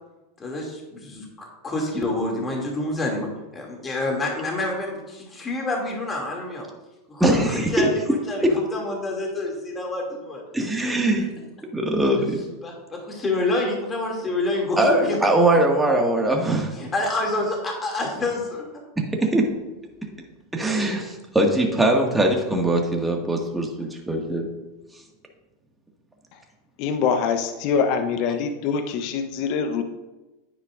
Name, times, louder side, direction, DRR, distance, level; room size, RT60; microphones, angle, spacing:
voice 1, 0.4-6.6 7.1-7.9 8.3-10.4 10.8-11.2 12.6-15.3 16.7-18.6, left 2 dB, 20° left, 0 dB, 2.6 m, -28 dB
voice 2, 7.2-7.7 10.5-11.3 11.7-12.4 14.8-16.7 19.0-19.5 20.5-24.5, right 1 dB, 10° right, 1 dB, 1.9 m, -21 dB
voice 3, 26.8-29.8, left 6 dB, 55° left, 7 dB, 0.9 m, -24 dB
10.0 x 9.5 x 2.6 m, 1.1 s
hypercardioid pair, 90°, 0 cm